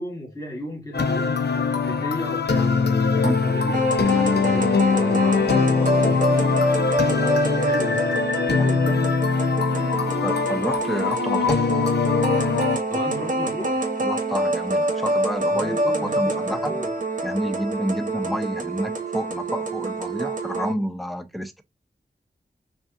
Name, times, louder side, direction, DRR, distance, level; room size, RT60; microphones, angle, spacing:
voice 1, 0.0-6.5 7.1-9.1 12.9-13.9 15.5-16.9, equal, 20° left, 1.8 m, -34 dB
sound 1, 0.9-12.8, left 5 dB, 65° left, 0.6 m, -22 dB
sound 2, 3.7-20.7, right 2 dB, 45° right, 0.9 m, -26 dB
voice 2, 10.2-11.6 14.0-16.8 17.2-21.6, equal, ahead, 0.6 m, -29 dB
5.0 x 2.7 x 2.4 m
wide cardioid pair, 70°, 18 cm